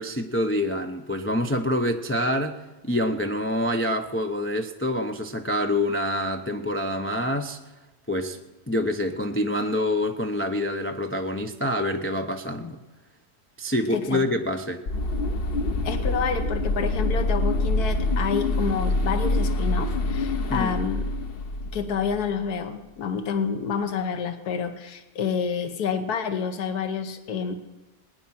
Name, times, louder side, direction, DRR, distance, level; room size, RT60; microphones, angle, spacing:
voice 1, 0.0-7.6 8.1-8.4 8.7-12.8 13.6-14.8 20.5-20.8, left 1 dB, 20° left, 4 dB, 0.3 m, -26 dB
voice 2, 13.9-14.2 15.8-21.1 21.7-27.5, left 6 dB, 75° left, 8 dB, 1.6 m, -28 dB
sound 1, 14.9-22.3, left 2 dB, 45° left, 0.8 m, -26 dB
20.0 x 9.7 x 5.9 m, 1.1 s
omnidirectional pair, 1.6 m